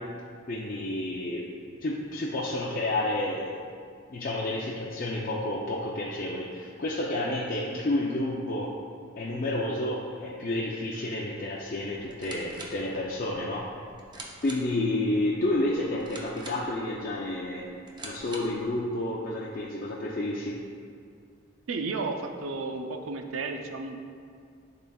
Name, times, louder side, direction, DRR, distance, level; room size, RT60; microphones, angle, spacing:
voice 1, 0.5-1.4 1.8-3.5 4.1-8.7 9.2-13.6 14.4-17.7 18.0-20.6, left 1 dB, 45° left, -4 dB, 0.5 m, -30 dB
sound 1, 12.0-18.7, right 2 dB, 20° right, 0.6 m, -46 dB
voice 2, 21.7-24.0, right 3 dB, 80° right, 4 dB, 0.5 m, -33 dB
10.5 x 3.9 x 2.3 m, 2.3 s
head